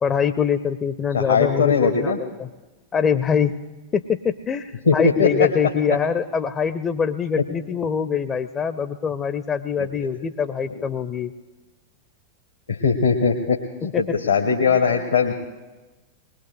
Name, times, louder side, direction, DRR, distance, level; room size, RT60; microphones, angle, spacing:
voice 1, 0.0-2.5 2.9-3.6 3.9-11.3 13.9-14.2, left 7 dB, 25° left, 12 dB, 0.5 m, -24 dB
voice 2, 1.1-2.2 4.8-5.5 7.4-7.5 9.8-9.9 10.7-10.8 12.7-15.3, left 5 dB, 75° left, 3 dB, 1.1 m, -20 dB
20.5 x 20.0 x 3.3 m, 1.2 s
figure-of-eight pair, 90°, 0 cm